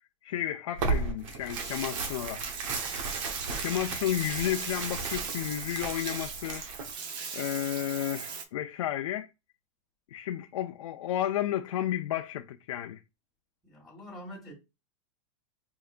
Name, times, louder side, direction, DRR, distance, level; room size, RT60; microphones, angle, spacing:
voice 1, 0.2-2.4 3.6-6.7 7.3-9.3 10.1-13.0, left 12 dB, 90° left, 0.5 m, -32 dB
Tearing, 0.7-6.9, right 4 dB, 80° right, 1.1 m, -35 dB
Bathtub (filling or washing), 1.5-8.5, right 6 dB, 25° right, 0.6 m, -38 dB
voice 2, 13.6-14.5, equal, ahead, 1.7 m, -45 dB
4.7 x 2.9 x 2.4 m
supercardioid pair, 155°, 17 cm